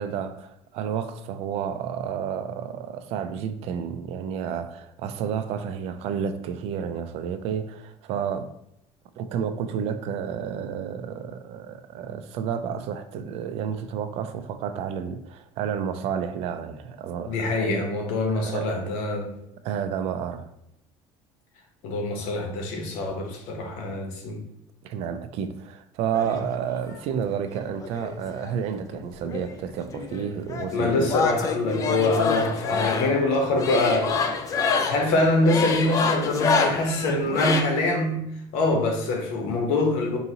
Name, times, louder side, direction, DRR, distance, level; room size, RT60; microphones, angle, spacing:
voice 1, 0.0-8.5 9.2-17.8 18.3-18.7 19.6-20.5 23.9-24.0 24.8-31.1 34.8-34.9, right 7 dB, 60° right, 0.4 m, -31 dB
voice 2, 17.3-19.3 21.8-24.4 30.7-34.4 34.8-38.3 38.5-40.2, left 2 dB, 85° left, 0.9 m, -24 dB
sound 1, 26.1-27.0 27.8-29.0 29.2-37.6, left 4 dB, 25° left, 0.3 m, -27 dB
4.7 x 2.7 x 2.8 m
cardioid pair, 160°, 12 cm